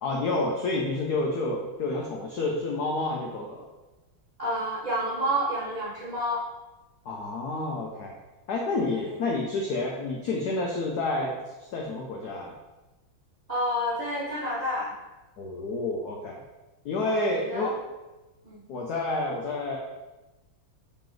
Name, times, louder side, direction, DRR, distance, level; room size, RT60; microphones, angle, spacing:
voice 1, 0.0-3.7 7.0-8.1 8.5-11.4 11.7-12.5 15.4-16.4 16.8-17.7 18.7-19.8, left 2 dB, 80° left, -1 dB, 0.8 m, -29 dB
voice 2, 4.4-6.4 8.9-9.2 13.5-14.9 17.0-17.7 18.4-18.6, equal, 60° right, -9 dB, 0.4 m, -29 dB
3.8 x 3.1 x 3.8 m, 1.1 s
omnidirectional pair, 2.3 m